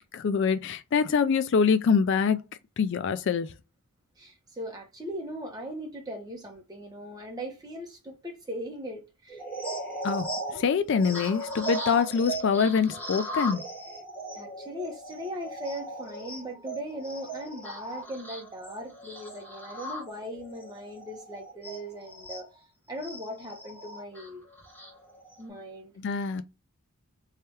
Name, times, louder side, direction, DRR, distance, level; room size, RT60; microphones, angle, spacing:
voice 1, 0.1-2.4 2.8-3.5 10.0-13.6 26.0-26.4, left 6 dB, 55° left, 0.3 m, -25 dB
voice 2, 4.2-9.4 14.3-22.5 22.9-24.4 25.4-25.9, equal, 15° right, 1.0 m, -39 dB
sound 1, 9.3-22.5 23.0-25.4, right 1 dB, 10° left, 2.1 m, -38 dB
3.4 x 3.2 x 3.0 m
head